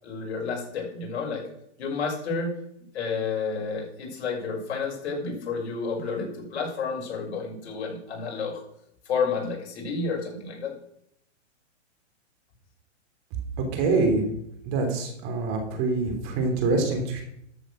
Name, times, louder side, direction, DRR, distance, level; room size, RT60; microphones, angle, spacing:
voice 1, 0.0-1.4 1.8-2.5 2.9-8.6 9.0-10.7, left 4 dB, 65° left, -1 dB, 6.2 m, -30 dB
voice 2, 13.6-14.3 14.6-17.2, right 3 dB, 35° right, 4 dB, 3.2 m, -25 dB
13.0 x 7.4 x 6.4 m, 0.74 s
hypercardioid pair, 145°, 36 cm